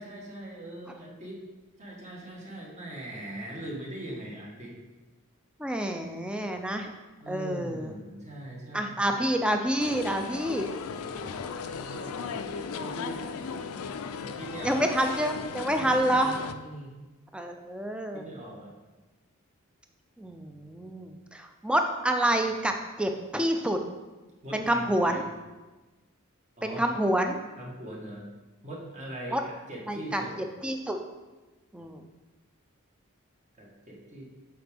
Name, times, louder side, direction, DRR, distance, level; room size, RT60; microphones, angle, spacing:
voice 1, 0.0-1.4 1.8-4.7 7.2-9.2 10.9-12.5 12.7-13.2 14.2-14.8 15.8-16.9 18.1-18.8 24.4-25.3 26.6-26.9 27.6-28.2 28.6-30.3 33.6-34.2, right 1 dB, 35° right, -2 dB, 1.5 m, -41 dB
voice 2, 5.6-6.9 7.3-7.9 8.7-10.7 14.6-16.3 17.3-18.2 20.2-23.8 24.5-25.2 26.6-27.4 29.3-29.4 29.9-30.2 30.6-31.0 31.7-32.0, right 1 dB, 5° right, 4 dB, 0.4 m, -28 dB
sound 1, 9.8-16.5, left 5 dB, 80° left, 0.4 m, -36 dB
7.7 x 4.9 x 3.5 m, 1.2 s
head